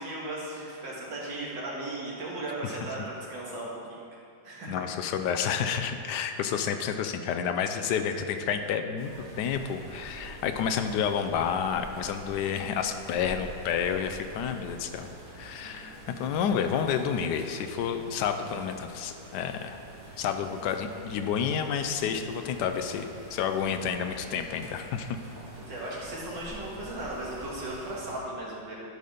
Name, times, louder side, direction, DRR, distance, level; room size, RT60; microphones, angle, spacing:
voice 1, 0.0-4.0 4.4-4.8 12.4-12.7 15.6-15.8 25.6-28.8, right 1 dB, 85° right, -5 dB, 2.4 m, -37 dB
voice 2, 4.7-15.1 15.4-19.8 20.2-25.2, left 7 dB, 75° left, 7 dB, 1.1 m, -30 dB
sound 1, 9.0-28.2, right 1 dB, 65° right, 2.3 m, -46 dB
11.5 x 4.1 x 5.1 m, 2.4 s
omnidirectional pair, 1.9 m